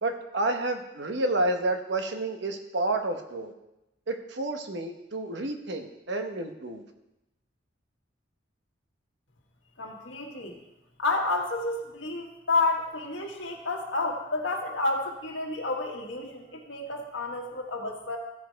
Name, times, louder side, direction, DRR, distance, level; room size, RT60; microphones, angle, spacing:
voice 1, 0.0-3.5 4.1-6.8, right 2 dB, 60° right, 5 dB, 1.0 m, -30 dB
voice 2, 9.8-10.6 11.0-18.2, left 3 dB, 70° left, 1 dB, 1.5 m, -30 dB
14.0 x 5.1 x 4.6 m, 0.92 s
head